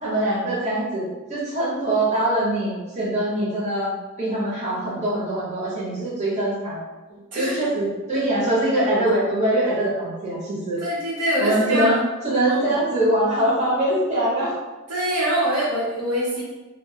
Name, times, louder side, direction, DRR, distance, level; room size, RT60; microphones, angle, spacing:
voice 1, 0.0-6.8 7.3-10.8 11.4-12.0 12.2-14.5, right 1 dB, 30° right, -8 dB, 1.0 m, -23 dB
voice 2, 7.1-7.6 10.8-12.0 12.5-12.7 14.9-16.4, equal, 75° right, -6 dB, 1.0 m, -24 dB
2.2 x 2.1 x 3.3 m, 1.2 s
head